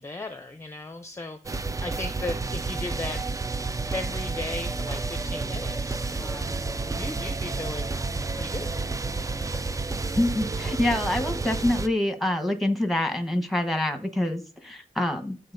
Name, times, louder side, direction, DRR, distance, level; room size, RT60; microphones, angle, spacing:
voice 1, 0.0-3.2 3.9-8.7, left 2 dB, 20° left, 7 dB, 0.6 m, -37 dB
sound 1, 1.4-11.9, right 3 dB, 20° right, 0.4 m, -30 dB
voice 2, 10.1-15.5, left 1 dB, ahead, 6 dB, 1.2 m, -26 dB
11.5 x 4.0 x 2.7 m, 0.35 s
wide cardioid pair, 85°, 15 cm